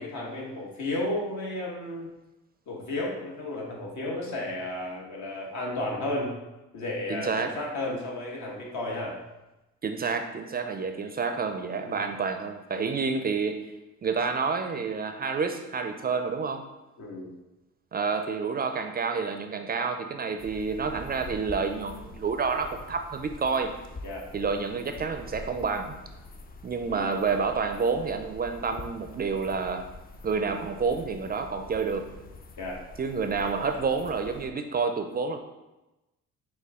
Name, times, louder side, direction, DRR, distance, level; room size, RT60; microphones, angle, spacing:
voice 1, 0.0-2.1 2.7-6.4 6.7-9.2 11.8-12.1 17.0-17.3 24.0-24.3 26.9-27.1 32.6-32.8, left 1 dB, 70° left, -2 dB, 1.4 m, -33 dB
voice 2, 7.1-7.5 9.8-13.7 14.0-16.6 17.9-23.7 24.3-25.9 26.6-29.9 30.2-32.2 33.0-35.4, right 5 dB, 30° right, 6 dB, 0.4 m, -29 dB
sound 1, 20.4-34.5, left 2 dB, 30° left, 0.4 m, -45 dB
6.5 x 2.3 x 3.5 m, 1.0 s
cardioid pair, 90°, 30 cm